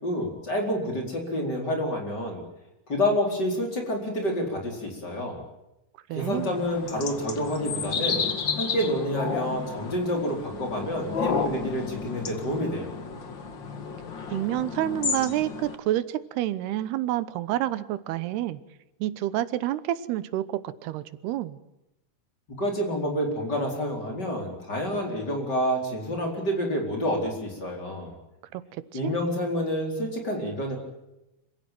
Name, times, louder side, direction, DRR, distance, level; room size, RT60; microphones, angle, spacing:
voice 1, 0.0-2.4 2.9-5.4 6.1-8.3 8.6-12.9 22.6-28.1 28.9-30.8, equal, 25° left, 2 dB, 4.6 m, -28 dB
voice 2, 6.1-6.6 14.3-18.6 19.0-21.6 28.5-29.1, right 14 dB, 90° right, 15 dB, 3.0 m, -29 dB
sound 1, 6.2-15.8, left 5 dB, 40° left, 1.8 m, -32 dB
26.5 x 16.5 x 9.2 m, 0.93 s
omnidirectional pair, 4.5 m